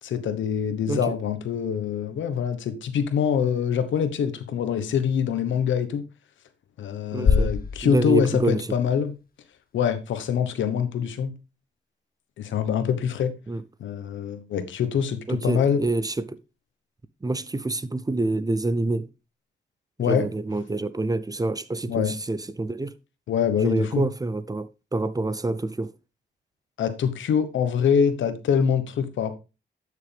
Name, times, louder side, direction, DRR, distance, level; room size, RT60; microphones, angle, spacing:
voice 1, 0.0-6.1 6.8-9.1 9.7-11.3 12.4-13.3 13.8-15.9 20.0-20.3 21.9-22.1 23.3-24.0 26.8-29.3, left 7 dB, 85° left, 1.2 m, -24 dB
voice 2, 7.1-7.5 7.8-8.8 13.5-13.6 15.3-16.4 17.2-19.1 20.0-22.9 23.6-25.9, right 2 dB, 20° right, 0.7 m, -27 dB
sound 1, 7.3-9.3, left 5 dB, 50° left, 0.8 m, -25 dB
12.0 x 6.6 x 3.4 m
cardioid pair, 65°, 19 cm